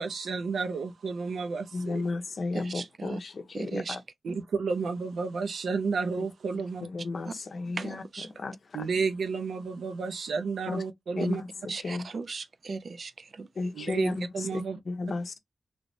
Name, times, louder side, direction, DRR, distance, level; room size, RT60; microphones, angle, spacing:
voice 1, 0.0-2.1 4.2-6.9 8.7-11.4 13.7-14.8, right 5 dB, 75° right, 0.7 m, -31 dB
voice 2, 1.7-4.0 6.8-8.0 8.4-8.5 10.7-10.8 11.2-11.5 11.8-12.1 13.6-14.1 14.9-15.4, left 3 dB, 45° left, 0.6 m, -33 dB
voice 3, 2.5-3.2 3.5-4.0 4.3-4.4 7.2-7.4 7.8-8.3 11.7-13.5, right 4 dB, 45° right, 0.3 m, -37 dB
3.1 x 3.0 x 2.6 m
wide cardioid pair, 180°, 0 cm